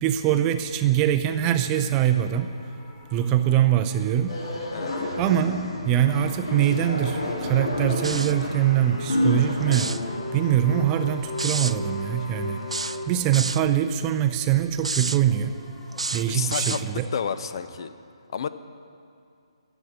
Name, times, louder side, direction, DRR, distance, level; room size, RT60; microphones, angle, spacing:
voice 1, 0.0-2.5 3.1-4.4 5.2-12.6 13.1-15.6 16.1-17.1, right 11 dB, 20° right, 8 dB, 0.5 m, -23 dB
sound 1, 1.6-12.5 14.6-17.9, left 2 dB, 15° left, 1.3 m, -50 dB
sound 2, 4.3-13.1, left 1 dB, 65° left, 2.6 m, -30 dB
sound 3, 8.0-8.4 9.6-10.0 11.4-11.8 12.7-13.6 14.8-15.2 15.9-16.8, right 3 dB, 90° right, 0.4 m, -30 dB
voice 2, 16.2-17.9 18.3-18.5, left 7 dB, 45° left, 12 dB, 0.6 m, -30 dB
11.5 x 7.1 x 9.7 m, 2.6 s
figure-of-eight pair, 150°, 3 cm